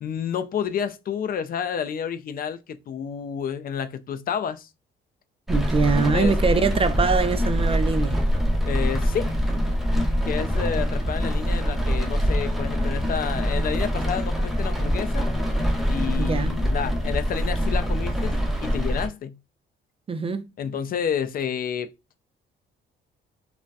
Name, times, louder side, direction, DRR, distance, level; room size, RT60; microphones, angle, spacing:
voice 1, 0.0-4.7 6.1-6.3 8.6-9.3 10.2-15.3 15.9-18.3 18.6-19.4 20.6-21.9, left 8 dB, 45° left, 0.4 m, -30 dB
Rain, 5.5-19.1, equal, ahead, 0.7 m, -24 dB
voice 2, 5.5-8.3 16.2-16.5 20.1-20.5, right 4 dB, 30° right, 0.3 m, -23 dB
3.2 x 2.0 x 2.6 m
cardioid pair, 90°, 20 cm